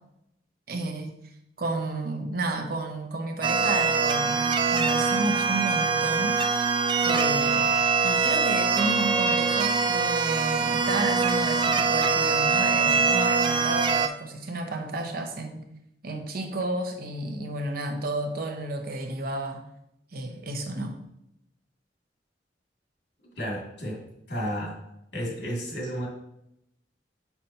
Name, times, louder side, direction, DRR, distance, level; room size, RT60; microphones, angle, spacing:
voice 1, 0.7-1.1 1.6-6.4 7.0-7.7 8.0-15.7 16.0-19.6 20.1-21.0, right 2 dB, 55° right, 5 dB, 0.8 m, -31 dB
sound 1, 3.4-14.1, right 5 dB, 25° right, 0.4 m, -23 dB
voice 2, 23.4-24.0 24.3-24.8 25.1-26.1, equal, 85° left, -2 dB, 2.4 m, -32 dB
6.6 x 5.8 x 2.8 m, 0.81 s
head